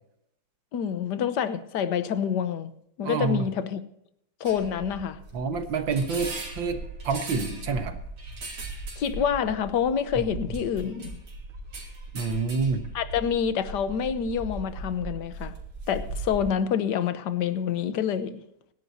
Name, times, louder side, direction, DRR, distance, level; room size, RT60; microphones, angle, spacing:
voice 1, 0.7-2.7 3.0-3.8 4.4-5.2 9.0-11.2 12.9-15.5 15.9-18.4, left 8 dB, 60° left, 1.4 m, -27 dB
voice 2, 3.0-3.5 5.3-6.8 7.0-8.0 10.2-10.3 12.1-12.8, right 4 dB, 65° right, 2.0 m, -27 dB
sound 1, 4.4-16.5, right 2 dB, 80° right, 3.7 m, -38 dB
25.5 x 11.5 x 2.8 m
omnidirectional pair, 2.3 m